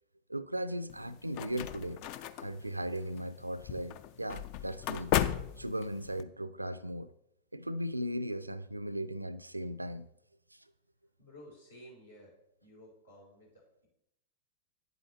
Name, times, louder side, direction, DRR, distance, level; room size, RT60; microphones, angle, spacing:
voice 1, 0.3-2.0 2.4-5.1 5.6-7.1 7.5-10.1 10.5-10.6, equal, 85° right, 0.3 m, -37 dB
sound 1, 0.9-6.2, left 11 dB, 45° left, 0.4 m, -36 dB
voice 2, 11.2-12.3 12.6-13.9, equal, 75° left, 3.6 m, -54 dB
9.1 x 7.8 x 3.0 m
figure-of-eight pair, 90°, 0 cm